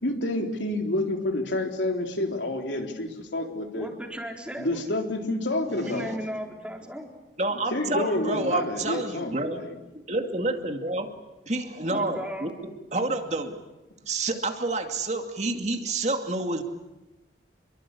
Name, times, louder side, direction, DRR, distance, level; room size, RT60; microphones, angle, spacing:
voice 1, 0.0-3.9 4.6-6.1 7.7-9.8, left 1 dB, 90° left, 3 dB, 3.8 m, -29 dB
voice 2, 3.7-4.9 5.8-7.1 11.9-12.5, equal, 5° right, 1 dB, 3.9 m, -36 dB
voice 3, 5.8-6.2 7.4-9.6 10.1-11.1 11.5-12.5 12.9-13.6 14.1-16.6, right 2 dB, 40° right, 5 dB, 2.4 m, -29 dB
29.0 x 23.0 x 8.5 m, 1.1 s
head